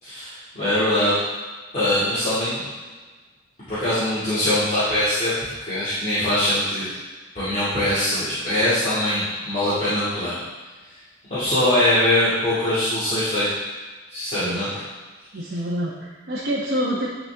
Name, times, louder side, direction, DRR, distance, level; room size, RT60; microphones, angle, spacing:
voice 1, 0.0-1.2 1.7-2.6 3.7-5.3 5.6-6.9 7.3-10.4 11.3-13.5 14.1-14.7, left 1 dB, 35° left, -14 dB, 2.4 m, -22 dB
voice 2, 15.3-17.1, equal, 55° right, -5 dB, 1.0 m, -26 dB
10.0 x 4.3 x 3.5 m, 1.3 s
head